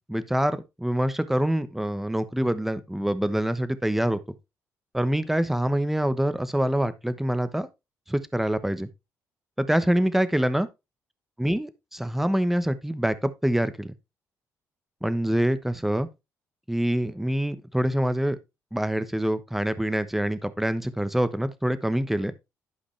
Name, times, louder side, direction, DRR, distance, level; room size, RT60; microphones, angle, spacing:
voice 1, 0.1-4.2 4.9-7.7 8.1-8.9 9.6-10.7 11.4-13.9 15.0-16.1 16.7-18.4 18.7-22.3, right 1 dB, 5° right, 1.0 m, -25 dB
11.5 x 5.1 x 3.3 m
cardioid pair, 90°, 6 cm